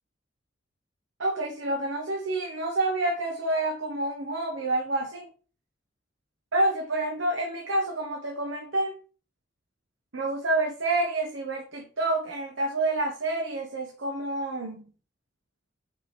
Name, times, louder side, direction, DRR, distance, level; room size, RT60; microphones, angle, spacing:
voice 1, 1.2-5.3 6.5-8.9 10.1-14.9, right 2 dB, 75° right, 1 dB, 1.2 m, -28 dB
6.2 x 4.8 x 4.3 m, 0.39 s
head